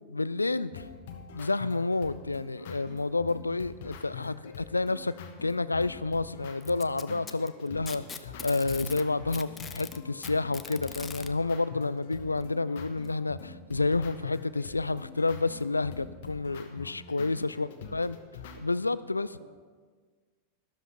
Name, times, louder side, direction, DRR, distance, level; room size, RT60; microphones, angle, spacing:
voice 1, 0.1-0.8 1.3-5.1 5.4-18.2 18.6-19.4, left 3 dB, 80° left, 17 dB, 0.3 m, -30 dB
sound 1, 0.7-18.6, left 6 dB, 55° left, 1.2 m, -45 dB
Packing tape duct tape, 6.6-9.0 9.3-11.3 12.4-12.5 13.0-13.1 14.0-14.1, left 6 dB, 20° left, 0.6 m, -42 dB
voice 2, 17.5-18.0 19.3-19.4, right 2 dB, 55° right, -1 dB, 3.9 m, -54 dB
12.5 x 12.5 x 4.2 m, 1.5 s
figure-of-eight pair, 90°, 0 cm